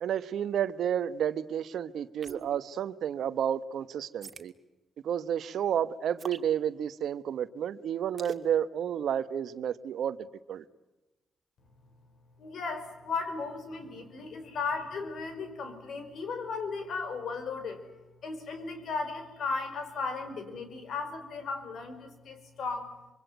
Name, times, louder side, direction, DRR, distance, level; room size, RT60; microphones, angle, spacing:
voice 1, 0.0-4.5 5.0-10.2 10.5-10.6, right 9 dB, 70° right, 1.1 m, -31 dB
sound 1, 2.2-2.6 4.2-4.5 6.2-6.5 8.2-8.5, right 5 dB, 45° right, 2.2 m, -41 dB
voice 2, 12.4-17.8 18.2-22.9, left 4 dB, 65° left, 5.3 m, -36 dB
25.5 x 24.5 x 9.5 m
supercardioid pair, 50°, 0 cm